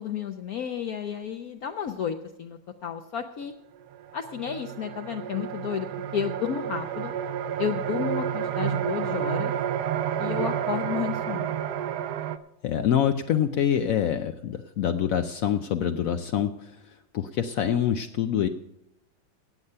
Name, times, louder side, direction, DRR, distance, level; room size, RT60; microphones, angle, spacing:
voice 1, 0.0-3.5 4.1-5.9 6.1-7.1 7.6-9.5 10.2-11.5, left 8 dB, 65° left, 5 dB, 1.0 m, -32 dB
sound 1, 3.4-3.5 3.9-12.4, right 9 dB, 70° right, 1.0 m, -30 dB
voice 2, 12.6-16.8 17.1-18.5, left 9 dB, 85° left, 7 dB, 0.7 m, -25 dB
17.5 x 8.0 x 5.6 m, 0.86 s
omnidirectional pair, 2.1 m